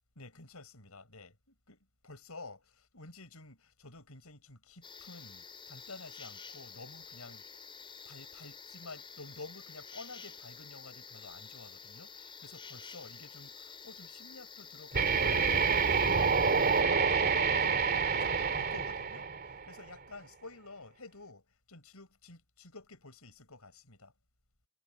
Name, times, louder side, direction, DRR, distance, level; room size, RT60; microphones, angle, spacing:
voice 1, 0.2-1.8 2.0-7.6 8.0-17.8 18.1-24.1, left 3 dB, 80° left, 6.7 m, -51 dB
sound 1, 4.8-16.8, left 5 dB, 25° left, 5.5 m, -50 dB
sound 2, 14.9-19.8, right 5 dB, 45° right, 2.7 m, -28 dB
head